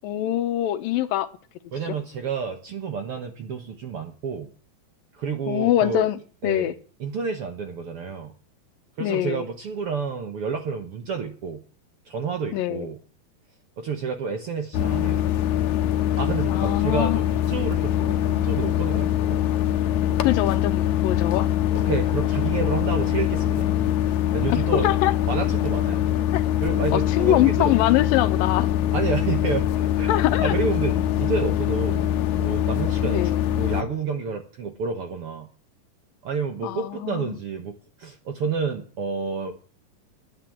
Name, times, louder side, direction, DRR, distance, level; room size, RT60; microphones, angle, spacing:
voice 1, 0.0-1.3 1.9-2.0 5.5-6.7 9.0-9.5 12.5-12.9 16.5-17.2 20.2-21.5 24.5-25.1 26.3-26.4 26.9-28.7 30.1-30.5 33.0-33.4 36.6-37.4, left 13 dB, 85° left, 11 dB, 2.6 m, -24 dB
voice 2, 1.7-4.5 5.1-6.1 6.4-6.7 7.0-8.3 9.0-11.6 12.1-13.0 13.8-15.2 16.2-19.4 21.8-23.7 24.3-24.9 25.3-26.1 26.6-27.7 28.9-32.1 32.4-35.5 36.2-39.5, right 5 dB, 60° right, 6 dB, 1.6 m, -30 dB
sound 1, 14.7-33.8, left 11 dB, 65° left, 2.1 m, -23 dB
10.5 x 8.6 x 10.0 m, 0.42 s
omnidirectional pair, 4.1 m